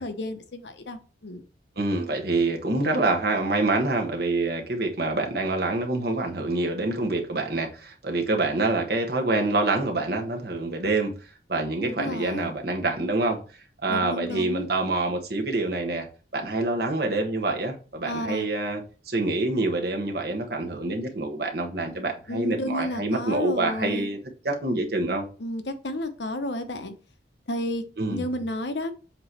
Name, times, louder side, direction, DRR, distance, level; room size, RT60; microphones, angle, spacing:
voice 1, 0.0-1.4 11.8-12.5 13.9-14.7 18.1-18.5 22.3-24.1 25.4-26.9 27.5-27.8 28.1-28.9, left 1 dB, 80° left, 0.9 m, -32 dB
voice 2, 1.8-13.4 13.8-24.2 24.4-25.3 28.0-28.3, right 2 dB, 60° right, 1.4 m, -26 dB
7.5 x 3.1 x 4.2 m
head